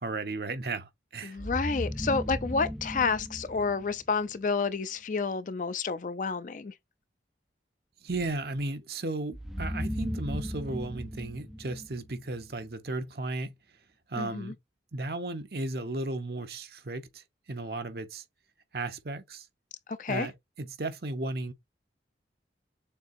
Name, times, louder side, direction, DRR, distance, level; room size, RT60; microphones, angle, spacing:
voice 1, 0.0-1.4 8.0-13.5 14.1-14.5 14.9-18.2 18.7-19.5 20.1-20.3 20.6-21.5, right 2 dB, 60° right, 0.8 m, -35 dB
voice 2, 1.2-6.7 14.2-14.5 20.0-20.3, left 4 dB, 45° left, 0.4 m, -30 dB
sound 1, 1.4-4.4 9.3-12.5, equal, ahead, 0.6 m, -36 dB
6.9 x 2.8 x 2.6 m
head